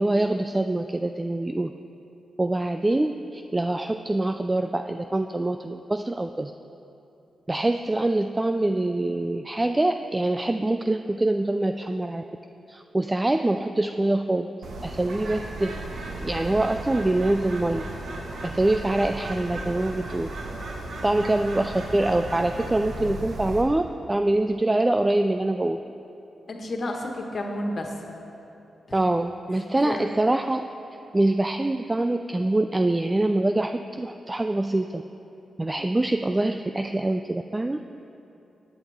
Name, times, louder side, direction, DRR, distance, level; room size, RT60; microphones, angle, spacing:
voice 1, 0.0-1.7 2.4-6.5 7.5-12.2 12.7-14.5 14.8-15.8 16.2-17.8 18.4-20.3 21.0-25.8 28.9-30.6 31.1-35.0 35.6-37.8, right 2 dB, 20° right, 7 dB, 0.3 m, -24 dB
Bird, 14.6-23.6, right 2 dB, 75° right, 1.4 m, -35 dB
voice 2, 26.5-28.0 29.7-30.1, left 1 dB, 55° left, 2 dB, 1.5 m, -31 dB
16.5 x 9.1 x 3.5 m, 2.9 s
cardioid pair, 80°, 0 cm